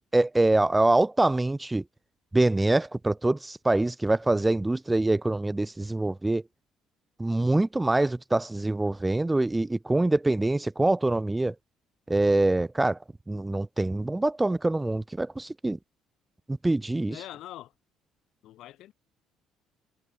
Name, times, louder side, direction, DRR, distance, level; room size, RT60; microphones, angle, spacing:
voice 1, 0.0-1.8 2.3-6.4 7.2-11.5 12.1-13.0 13.3-15.8 16.5-17.2, right 2 dB, 10° right, 0.4 m, -24 dB
voice 2, 17.1-17.7 18.4-18.9, left 14 dB, 70° left, 7.1 m, -43 dB
cardioid pair, 105°, 0 cm